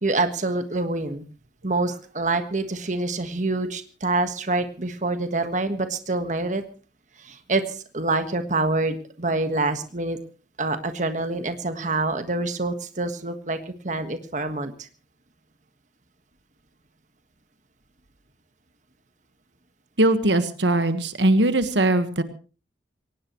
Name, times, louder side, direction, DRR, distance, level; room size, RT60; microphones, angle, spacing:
voice 1, 0.0-1.2 1.6-6.6 7.2-10.2 10.6-14.9, right 2 dB, 45° right, 9 dB, 1.5 m, -26 dB
voice 2, 20.0-22.2, right 1 dB, 85° right, 11 dB, 1.5 m, -20 dB
23.0 x 18.5 x 3.1 m, 0.36 s
head